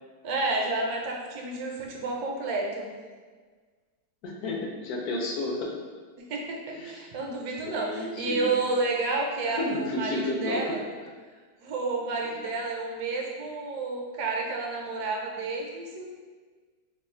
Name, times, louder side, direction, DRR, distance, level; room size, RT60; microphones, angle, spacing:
voice 1, 0.2-2.9 6.2-10.8 11.6-16.1, right 3 dB, 70° right, 0 dB, 1.1 m, -30 dB
voice 2, 4.2-5.7 6.7-7.1 7.6-8.5 9.5-10.8 12.2-12.4, left 2 dB, 70° left, -1 dB, 1.0 m, -32 dB
2.9 x 2.3 x 4.2 m, 1.5 s
omnidirectional pair, 1.9 m